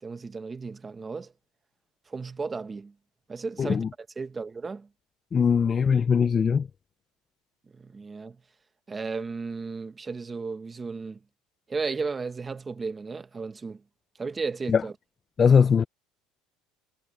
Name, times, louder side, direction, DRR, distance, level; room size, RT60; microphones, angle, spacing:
voice 1, 0.0-1.3 2.1-2.9 3.3-3.8 4.2-4.9 7.7-8.4 8.9-11.2 11.7-13.8 14.2-14.9, right 4 dB, 15° right, 1.3 m, -34 dB
voice 2, 3.6-3.9 5.3-6.7 14.7-14.8 15.4-15.8, left 6 dB, 25° left, 0.5 m, -20 dB
cardioid pair, 145°, 0 cm